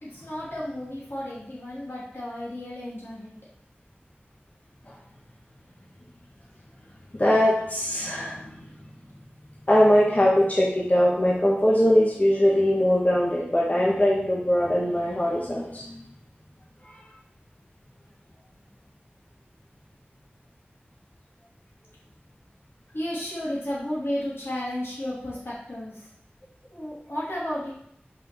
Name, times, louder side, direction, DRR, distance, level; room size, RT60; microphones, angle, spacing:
voice 1, 0.0-3.3 22.9-26.1 26.7-27.7, left 1 dB, 85° left, -8 dB, 3.0 m, -33 dB
voice 2, 7.1-8.7 9.7-16.0 16.8-16.9, equal, 40° left, -5 dB, 1.5 m, -21 dB
5.7 x 4.9 x 4.5 m, 0.69 s
wide cardioid pair, 50°, 4 cm